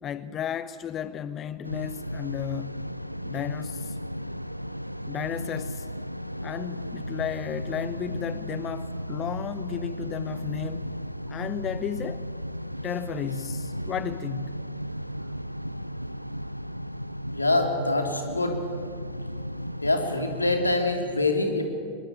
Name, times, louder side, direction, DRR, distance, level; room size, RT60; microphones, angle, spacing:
voice 1, 0.0-2.7 3.2-4.0 5.1-5.9 6.4-10.9 11.3-12.3 12.8-14.6, left 9 dB, 30° left, 15 dB, 0.7 m, -34 dB
sound 1, 1.6-20.8, equal, 90° right, 0.6 m, -35 dB
voice 2, 17.3-18.6 19.8-21.6, left 2 dB, 80° left, 5 dB, 3.0 m, -25 dB
24.0 x 21.5 x 9.2 m, 2.1 s
figure-of-eight pair, 90°, 0 cm